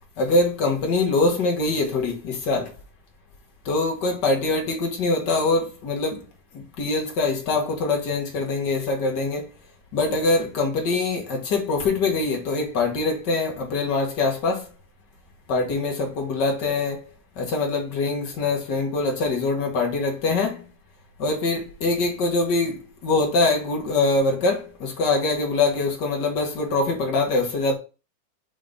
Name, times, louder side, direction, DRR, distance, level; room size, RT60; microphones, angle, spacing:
voice 1, 0.2-2.7 3.6-6.2 6.5-9.5 9.9-14.7 15.5-17.1 17.4-20.7 21.2-27.8, left 3 dB, 70° left, 1.0 m, -23 dB
5.1 x 3.8 x 5.2 m
omnidirectional pair, 4.1 m